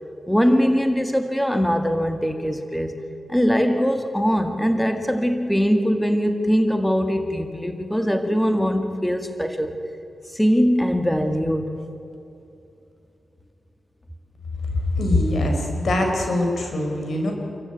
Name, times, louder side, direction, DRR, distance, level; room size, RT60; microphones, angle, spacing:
voice 1, 0.3-2.9 3.3-9.7 10.3-11.8, equal, 5° left, 7 dB, 2.0 m, -21 dB
voice 2, 15.0-17.3, left 1 dB, 70° left, 2 dB, 5.0 m, -22 dB
27.5 x 14.5 x 9.4 m, 2.8 s
cardioid pair, 50°, 0 cm